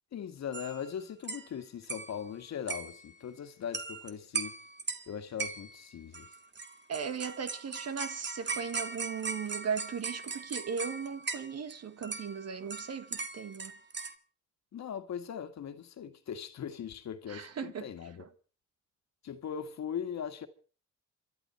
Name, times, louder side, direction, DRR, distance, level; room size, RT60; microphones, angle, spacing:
voice 1, 0.1-4.6 5.1-6.3 14.7-18.2 19.2-20.5, left 8 dB, 60° left, 1.8 m, -40 dB
sound 1, 0.5-0.9 1.2-1.5 1.8-2.3 2.7-3.1 3.7-4.1 4.3-5.1 5.4-5.8 6.1-11.7 12.0-14.1, right 4 dB, 35° right, 2.0 m, -39 dB
voice 2, 6.9-13.7 17.3-18.3, right 6 dB, 50° right, 1.8 m, -37 dB
28.0 x 12.0 x 4.3 m
supercardioid pair, 65°, 31 cm